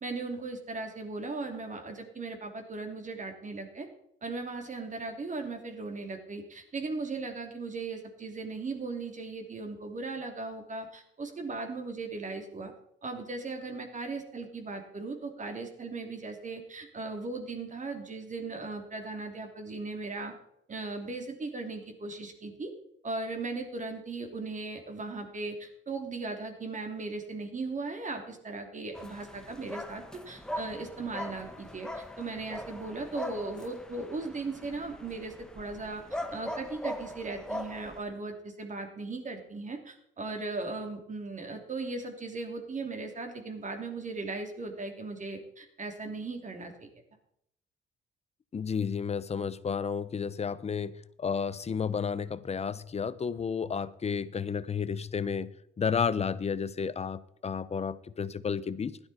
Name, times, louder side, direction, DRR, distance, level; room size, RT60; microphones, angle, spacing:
voice 1, 0.0-3.9 4.2-12.7 13.0-20.3 20.7-22.7 23.0-36.0 36.3-46.9, right 3 dB, 40° right, 4 dB, 3.0 m, -38 dB
sound 1, 28.9-38.0, equal, 5° left, 1.4 m, -41 dB
voice 2, 48.5-55.5 55.8-59.0, left 6 dB, 30° left, 16 dB, 0.7 m, -32 dB
16.0 x 11.5 x 4.3 m, 0.73 s
cardioid pair, 90°, 20 cm